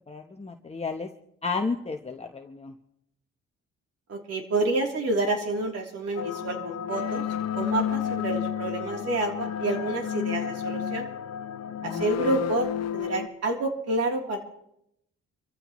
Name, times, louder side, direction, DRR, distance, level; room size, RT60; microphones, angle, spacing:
voice 1, 0.1-1.1 1.4-2.7 11.8-12.4, left 4 dB, 20° left, 4 dB, 1.0 m, -33 dB
voice 2, 4.1-7.2 7.5-11.1 11.8-14.4, right 2 dB, 55° right, 1 dB, 3.3 m, -28 dB
sound 1, 6.2-13.3, left 9 dB, 60° left, 0.8 m, -31 dB
26.5 x 14.5 x 3.1 m, 0.78 s
cardioid pair, 90°, 30 cm